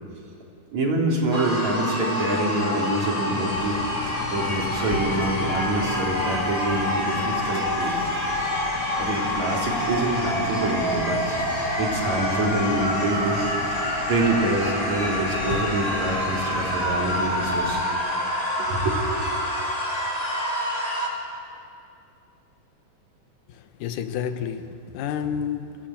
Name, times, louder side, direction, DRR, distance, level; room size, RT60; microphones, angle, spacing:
voice 1, 0.7-3.8 4.3-8.1 9.0-11.3 11.8-17.8 18.6-19.0, right 2 dB, 60° right, -1 dB, 4.6 m, -26 dB
sound 1, 1.3-21.1, left 1 dB, 10° left, 2.6 m, -27 dB
sound 2, 3.5-17.8, left 5 dB, 60° left, 2.2 m, -37 dB
voice 2, 23.5-25.8, left 8 dB, 85° left, 10 dB, 2.6 m, -30 dB
25.0 x 16.5 x 8.8 m, 2.5 s
omnidirectional pair, 3.6 m